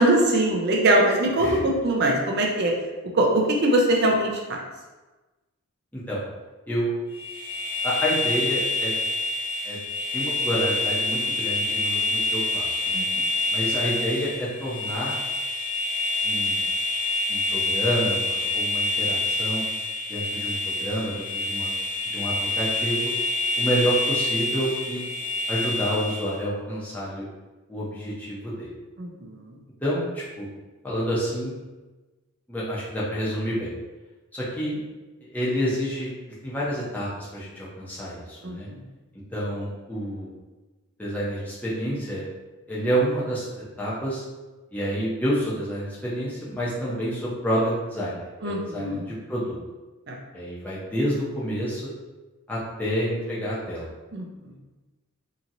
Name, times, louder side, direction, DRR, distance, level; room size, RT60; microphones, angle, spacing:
voice 1, 0.0-2.7 3.1-4.6 12.9-13.3 29.0-29.3 38.4-38.8 48.4-49.0 50.1-50.2 54.1-54.2, right 1 dB, 50° right, 0 dB, 0.5 m, -22 dB
sound 1, 7.1-26.4, left 1 dB, 50° left, 0.7 m, -27 dB
voice 2, 7.8-8.9 9.6-9.8 10.1-13.1 13.5-15.2 16.2-16.6 17.3-19.6 20.1-21.7 22.0-23.1 23.6-25.0 25.5-27.3 27.7-28.7 29.8-30.5 30.8-31.5 32.5-33.7 34.3-34.8 35.2-36.1 36.4-38.7 39.3-40.3 41.0-42.2 42.7-43.5 43.8-44.2 44.7-49.6 50.3-51.9 52.5-53.9, equal, 10° left, -8 dB, 0.7 m, -28 dB
2.8 x 2.8 x 2.5 m, 1.2 s
head